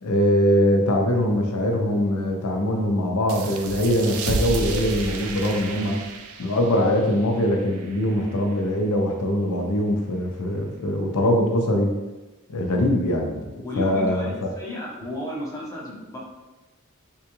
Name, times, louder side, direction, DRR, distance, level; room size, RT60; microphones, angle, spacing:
voice 1, 0.0-6.0 6.4-11.9 12.5-14.5, left 1 dB, 85° left, 2 dB, 0.5 m, -22 dB
sound 1, 3.3-8.5, right 3 dB, 70° right, 0.4 m, -32 dB
voice 2, 13.6-16.2, left 1 dB, 15° left, -5 dB, 0.7 m, -33 dB
3.6 x 2.3 x 2.9 m, 1.1 s
head